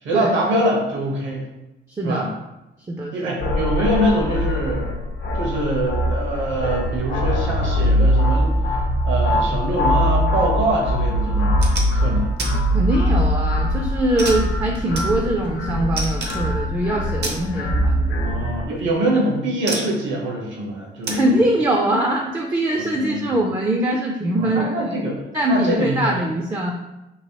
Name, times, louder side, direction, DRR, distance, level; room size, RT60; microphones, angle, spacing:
voice 1, 0.0-1.4 2.0-2.3 3.1-4.8 5.3-8.7 9.1-12.3 18.2-21.3 22.8-23.3 24.4-25.2 25.5-26.2, right 1 dB, 75° right, -2 dB, 1.1 m, -24 dB
voice 2, 1.9-2.2 2.9-3.1 12.7-18.4 21.1-25.0 25.3-26.7, right 1 dB, 20° right, 1 dB, 0.4 m, -22 dB
sound 1, 3.4-18.6, equal, 60° left, 0.6 m, -22 dB
sound 2, 11.4-11.9 12.4-12.5 13.0-13.4 14.2-15.5 16.0-16.5 17.2-17.4 18.7-18.9 19.7-20.0 21.0-21.3, right 3 dB, 60° right, 0.7 m, -29 dB
3.1 x 2.8 x 2.9 m, 0.96 s
cardioid pair, 90°, 20 cm